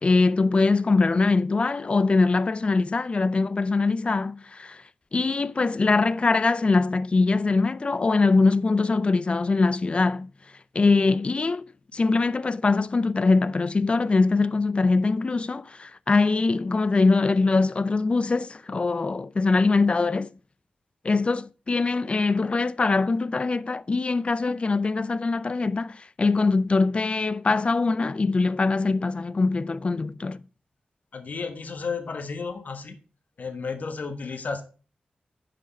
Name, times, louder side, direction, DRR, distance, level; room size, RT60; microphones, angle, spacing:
voice 1, 0.0-4.8 5.1-10.3 10.7-11.7 11.9-20.3 21.0-30.4, left 3 dB, 40° left, 0.4 m, -22 dB
voice 2, 31.1-33.0 33.4-34.6, left 4 dB, 60° left, 1.3 m, -32 dB
10.0 x 5.1 x 5.2 m
wide cardioid pair, 90°, 3 cm